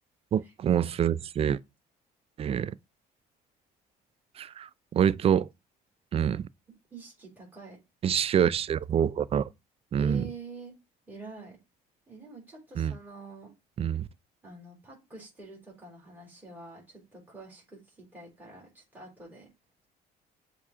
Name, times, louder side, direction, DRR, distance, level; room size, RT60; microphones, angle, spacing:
voice 1, 0.3-1.6 2.4-2.7 4.4-5.5 6.1-6.4 8.0-9.5 9.9-10.3 12.8-12.9 13.8-14.1, right 9 dB, 35° right, 0.4 m, -26 dB
voice 2, 6.9-7.8 10.0-10.7 11.1-11.6 12.1-13.5 14.4-19.5, right 3 dB, 10° right, 3.9 m, -46 dB
7.0 x 2.9 x 4.8 m
cardioid pair, 110°, 17 cm